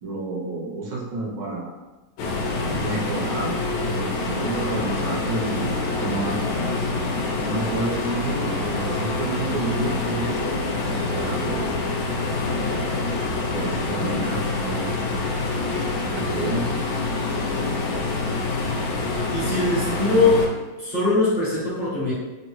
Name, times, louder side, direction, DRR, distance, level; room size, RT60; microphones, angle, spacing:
voice 1, 0.0-1.7 2.8-6.4 7.4-11.7 13.5-15.0 16.1-16.8, right 2 dB, 75° right, -1 dB, 1.2 m, -30 dB
sound 1, 2.2-20.5, left 3 dB, 75° left, 1.2 m, -26 dB
voice 2, 19.3-20.5 20.8-22.1, left 3 dB, 35° left, -9 dB, 0.7 m, -21 dB
3.6 x 2.1 x 2.9 m, 1.1 s
omnidirectional pair, 2.1 m